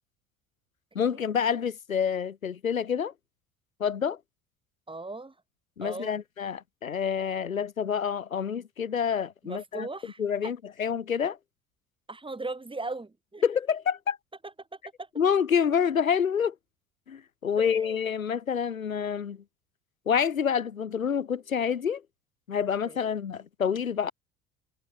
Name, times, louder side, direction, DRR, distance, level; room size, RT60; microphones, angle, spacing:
voice 1, 0.9-3.1 3.8-4.2 5.8-9.9 10.2-11.4 13.4-14.2 15.2-16.5 17.1-19.4 20.1-22.0 22.5-24.1, left 7 dB, 85° left, 1.4 m, -27 dB
voice 2, 4.9-5.3 5.8-6.2 9.4-10.5 12.1-13.4 14.4-14.5 15.0-15.1 17.6-18.0 22.9-23.1, right 3 dB, 15° right, 3.6 m, -38 dB
figure-of-eight pair, 55°, 40 cm